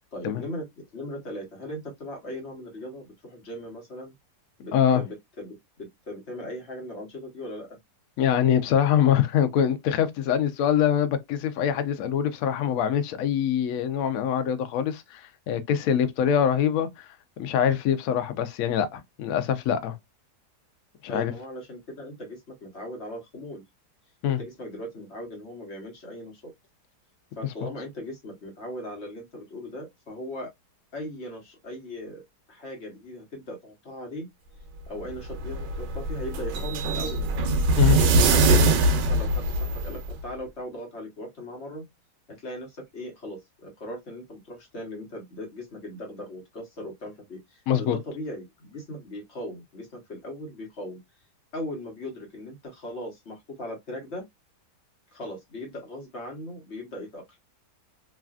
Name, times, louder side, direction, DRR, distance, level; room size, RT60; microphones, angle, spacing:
voice 1, 0.1-0.7 0.9-4.1 4.6-7.8 21.1-23.6 24.3-26.5 27.4-30.5 30.9-32.2 32.5-34.3 34.9-37.2 37.8-41.9 42.3-51.0 51.5-54.3 55.1-57.2, left 1 dB, 45° left, 1.2 m, -38 dB
voice 2, 4.7-5.0 8.2-17.1 17.4-20.0 21.1-21.3 24.2-24.4 37.8-38.0 47.7-48.0, left 9 dB, 70° left, 0.9 m, -24 dB
sound 1, 35.1-40.1, right 2 dB, 90° right, 1.3 m, -22 dB
3.2 x 2.5 x 2.3 m
omnidirectional pair, 1.8 m